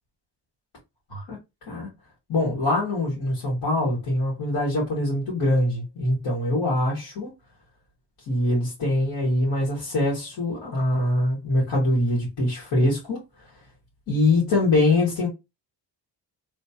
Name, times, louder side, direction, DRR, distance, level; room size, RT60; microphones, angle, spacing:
voice 1, 2.3-7.3 8.3-13.2 14.1-15.3, left 1 dB, 70° left, 2.0 m, -23 dB
3.2 x 3.0 x 2.9 m
cardioid pair, 120°, 41 cm